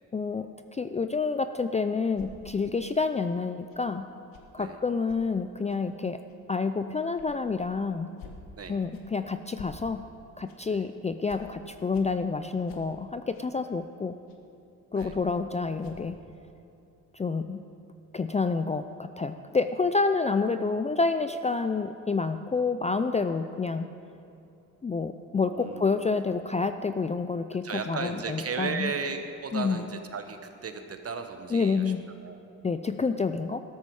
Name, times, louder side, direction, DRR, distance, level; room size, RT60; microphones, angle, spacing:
voice 1, 0.1-0.5 0.7-4.1 4.5-6.2 6.5-8.1 8.7-10.0 10.4-14.2 14.9-16.2 17.1-17.6 18.1-23.9 24.8-28.9 29.5-29.8 31.5-32.0 32.6-33.6, left 4 dB, 20° left, 9 dB, 0.4 m, -28 dB
sound 1, 2.1-2.3 3.7-3.8 4.3-4.5 5.1-5.2 5.7-5.8 6.3-6.4 7.1-7.3 7.6-7.7 8.2-8.4 8.9-9.1 9.5-9.7 10.5-10.6 11.3-11.4 11.9-12.1 12.7-12.8 13.3-13.5 14.3-14.4 15.0-15.1 15.8-16.1, left 6 dB, 80° left, 1.5 m, -48 dB
voice 2, 25.5-26.1 27.6-31.9 32.2-32.4, right 5 dB, 45° right, 7 dB, 1.3 m, -35 dB
13.0 x 13.0 x 4.8 m, 2.7 s
cardioid pair, 85°, 34 cm